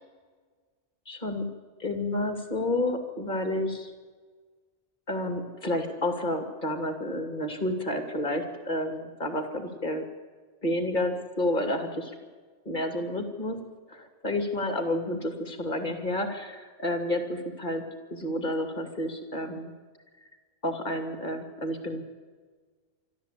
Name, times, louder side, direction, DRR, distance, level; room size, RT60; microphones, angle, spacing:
voice 1, 1.1-1.5 1.8-3.9 5.1-10.0 10.6-12.1 12.6-17.8 18.1-19.7 20.6-22.0, left 1 dB, 40° left, 5 dB, 2.9 m, -30 dB
24.5 x 13.5 x 8.5 m, 1.5 s
omnidirectional pair, 1.2 m